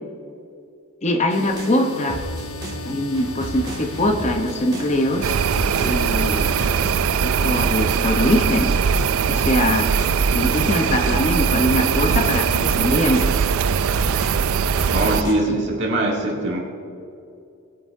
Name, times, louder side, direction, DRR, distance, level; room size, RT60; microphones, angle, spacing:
voice 1, 1.0-2.2 2.8-5.3 5.8-6.5 7.2-8.7 9.3-9.9 10.3-13.3 15.1-15.4, left 1 dB, 30° left, 4 dB, 0.8 m, -22 dB
sound 1, 1.3-6.7, left 2 dB, 80° left, 1.2 m, -36 dB
sound 2, 1.5-10.3 10.5-15.3, equal, 20° right, 2.0 m, -33 dB
sound 3, 5.2-15.2, right 7 dB, 80° right, 0.4 m, -21 dB
voice 2, 14.9-16.6, right 1 dB, 55° right, -3 dB, 2.3 m, -22 dB
20.5 x 8.7 x 2.6 m, 2.6 s
head